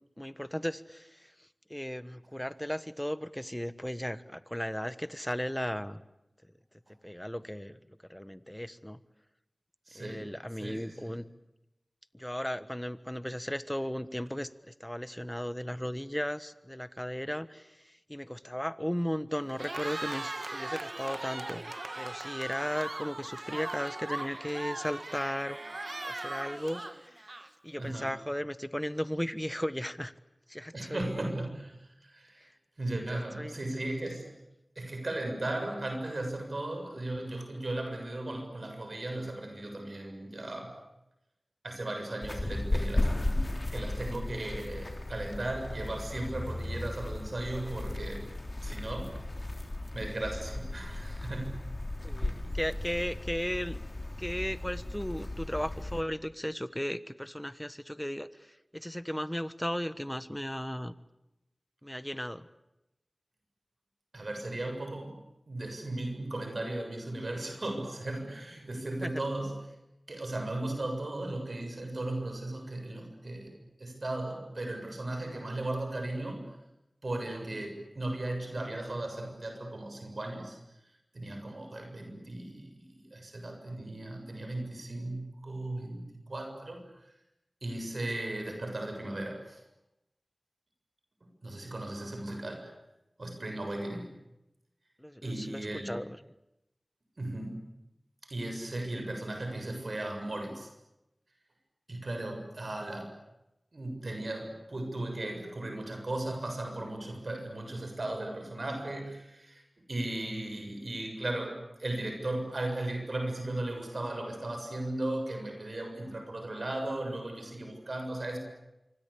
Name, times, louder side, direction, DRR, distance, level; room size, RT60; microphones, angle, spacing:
voice 1, 0.2-6.0 7.0-7.8 8.1-9.0 9.9-11.3 12.1-21.7 22.0-25.6 26.0-27.2 27.6-30.1 30.5-31.4 33.1-33.5 52.0-53.8 54.2-60.9 61.8-62.5 69.0-69.1 95.0-96.2, equal, 10° left, 14 dB, 1.3 m, -36 dB
voice 2, 9.9-10.2 10.6-11.1 27.8-28.1 30.7-32.5 32.8-34.3 34.8-40.7 41.6-48.2 48.6-49.1 49.9-51.7 64.1-69.7 70.1-76.6 77.0-80.6 81.1-86.8 87.6-89.6 91.2-92.7 93.2-94.1 95.2-95.9 97.2-97.6 98.3-100.7 101.9-103.1 103.7-118.4, right 1 dB, 70° right, 4 dB, 7.2 m, -36 dB
Cheering, 19.5-27.7, right 2 dB, 50° right, 1.8 m, -39 dB
sound 1, 42.2-56.0, left 1 dB, 50° left, 3.5 m, -35 dB
26.5 x 25.0 x 8.6 m, 0.91 s
wide cardioid pair, 50°, 0 cm